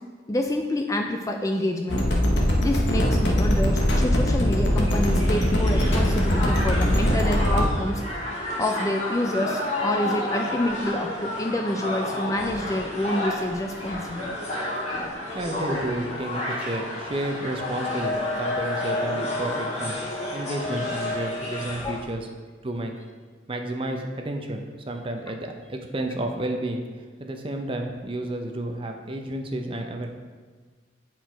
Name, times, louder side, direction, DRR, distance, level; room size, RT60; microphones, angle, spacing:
voice 1, 0.3-2.1 2.6-8.0 8.6-14.4 14.9-15.3 21.8-22.1, left 1 dB, 15° left, 4 dB, 0.3 m, -28 dB
sound 1, 1.9-7.7, equal, 65° left, 1.1 m, -21 dB
Crowd, 4.6-22.0, left 1 dB, 35° left, 1.7 m, -30 dB
voice 2, 15.3-20.0 20.3-22.3 22.6-22.9 23.5-30.1, right 1 dB, 25° right, 3 dB, 0.6 m, -31 dB
8.1 x 4.6 x 4.5 m, 1.5 s
head